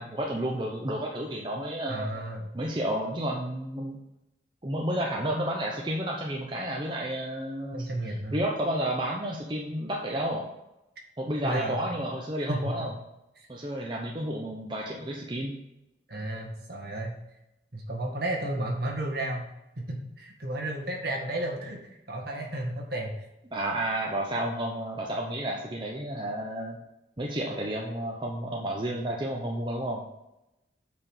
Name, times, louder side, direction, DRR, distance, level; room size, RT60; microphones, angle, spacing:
voice 1, 0.0-2.1 2.5-4.0 4.6-10.5 11.2-12.9 13.5-15.5 23.5-26.8 27.2-30.0, right 1 dB, 25° right, -1 dB, 0.8 m, -31 dB
voice 2, 1.9-2.5 7.7-8.3 11.4-11.9 12.5-12.9 13.4-13.5 16.1-17.1 17.7-19.5 19.8-21.8 22.1-23.3, right 1 dB, 55° right, 0 dB, 1.9 m, -32 dB
8.3 x 4.9 x 5.5 m, 0.91 s
head